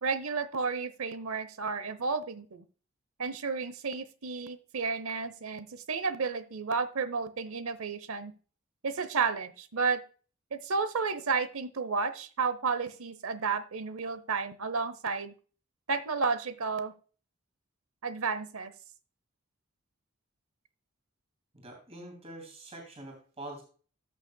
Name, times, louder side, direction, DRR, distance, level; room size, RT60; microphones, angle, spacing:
voice 1, 0.0-2.6 3.2-8.3 8.8-10.0 10.5-15.3 15.9-16.9 18.0-18.7, right 4 dB, 85° right, 14 dB, 0.8 m, -32 dB
voice 2, 21.5-23.6, right 1 dB, 30° right, 1 dB, 2.9 m, -45 dB
14.0 x 6.5 x 2.3 m, 0.38 s
head